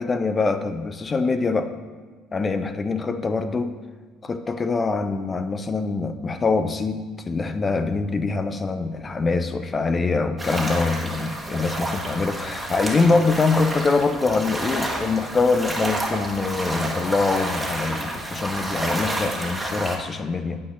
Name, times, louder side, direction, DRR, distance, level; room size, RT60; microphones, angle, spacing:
voice 1, 0.0-1.7 2.3-3.7 4.2-20.6, left 3 dB, 20° left, 9 dB, 0.5 m, -24 dB
sound 1, 10.4-20.0, right 1 dB, 10° right, 1.4 m, -30 dB
8.5 x 8.3 x 5.5 m, 1.4 s
cardioid pair, 140°, 0 cm